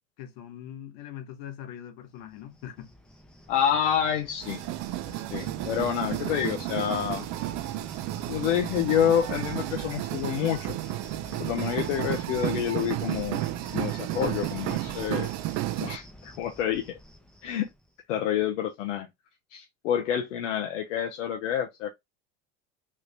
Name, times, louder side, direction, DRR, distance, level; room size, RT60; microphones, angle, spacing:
voice 1, 0.2-2.9, left 10 dB, 70° left, 1.0 m, -42 dB
Cricket, 2.2-17.9, equal, ahead, 0.7 m, -46 dB
voice 2, 3.5-4.6 5.3-7.3 8.3-10.8 11.4-13.4 13.7-15.3 15.8-16.9 17.4-17.7 18.1-19.1 19.5-21.9, left 9 dB, 85° left, 0.7 m, -28 dB
sound 1, 4.4-16.0, right 16 dB, 55° right, 0.4 m, -32 dB
3.2 x 2.5 x 3.2 m
supercardioid pair, 95°, 35 cm